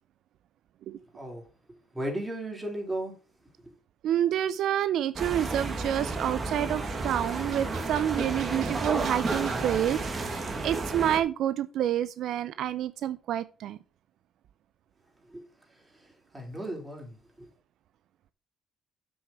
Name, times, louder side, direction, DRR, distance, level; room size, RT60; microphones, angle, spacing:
voice 1, 1.1-1.5 1.9-3.1 3.6-3.7 15.3-15.4 15.7-17.5, right 1 dB, 15° right, 4.6 m, -36 dB
voice 2, 4.0-13.8, right 11 dB, 80° right, 0.5 m, -28 dB
sound 1, 5.1-11.2, right 3 dB, 35° right, 2.3 m, -32 dB
8.0 x 6.3 x 5.9 m
cardioid pair, 90°, 0 cm